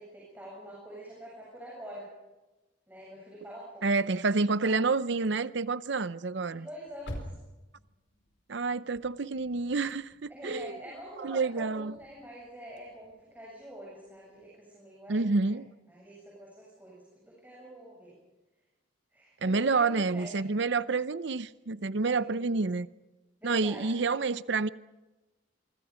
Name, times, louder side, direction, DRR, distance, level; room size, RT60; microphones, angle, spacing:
voice 1, 0.0-2.1 2.9-3.9 6.5-7.4 10.3-15.6 15.9-18.1 19.1-20.3 22.1-22.7 23.4-24.0, equal, 10° right, 7.8 m, -46 dB
voice 2, 3.8-6.7 8.5-10.7 11.2-11.9 15.1-15.7 19.4-22.9 23.4-24.7, right 4 dB, 65° right, 0.7 m, -28 dB
sound 1, 6.8-13.6 13.9-14.1 14.4-14.5, equal, 75° left, 4.6 m, -48 dB
27.0 x 25.0 x 5.1 m
head